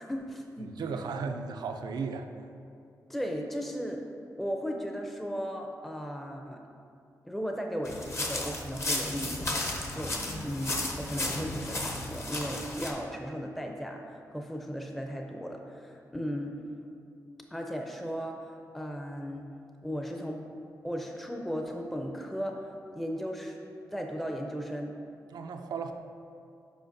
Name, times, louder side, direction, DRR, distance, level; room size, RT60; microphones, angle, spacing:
voice 1, 0.0-0.7 3.1-4.0 4.4-6.6 7.2-9.6 9.9-16.5 17.5-19.5 19.8-20.4 20.8-23.6 23.9-24.9, equal, ahead, 2 dB, 0.5 m, -36 dB
voice 2, 0.6-2.3 25.3-25.9, right 5 dB, 80° right, 6 dB, 0.4 m, -35 dB
sound 1, 7.9-12.9, left 1 dB, 40° left, 0.9 m, -34 dB
7.8 x 5.0 x 2.6 m, 2.6 s
cardioid pair, 55°, 7 cm